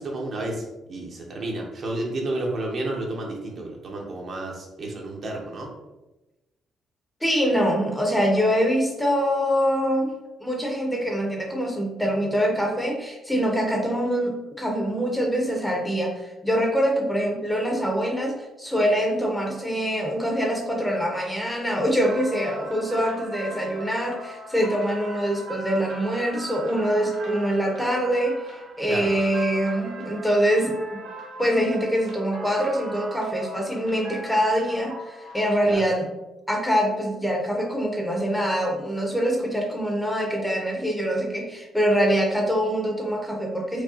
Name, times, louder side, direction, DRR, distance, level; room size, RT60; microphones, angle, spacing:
voice 1, 0.0-5.7 28.9-29.1 35.6-35.8, right 2 dB, 50° right, -1 dB, 0.8 m, -31 dB
voice 2, 7.2-10.1 10.4-28.3 28.8-31.0 31.4-36.1 36.5-43.8, equal, 5° left, 0 dB, 0.8 m, -24 dB
sound 1, 22.0-35.8, right 2 dB, 90° right, 1.1 m, -39 dB
4.7 x 2.2 x 2.8 m, 1.0 s
cardioid pair, 90°, 0 cm